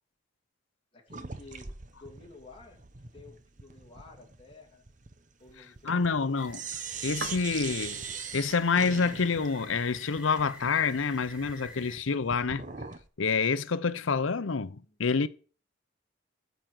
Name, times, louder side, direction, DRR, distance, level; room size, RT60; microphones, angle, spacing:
voice 1, 0.9-2.8 3.1-4.8 5.4-6.3 14.8-15.0, left 3 dB, 25° left, 2.7 m, -52 dB
sound 1, 1.1-6.2 6.5-13.1, right 5 dB, 40° right, 0.9 m, -42 dB
sound 2, 5.4-11.4, right 4 dB, 65° right, 1.1 m, -49 dB
voice 2, 5.8-6.6 7.0-8.0 8.3-12.6 13.2-15.3, left 5 dB, 85° left, 0.7 m, -27 dB
sound 3, 6.3-12.0, left 1 dB, 5° right, 3.1 m, -49 dB
13.5 x 5.2 x 7.8 m
head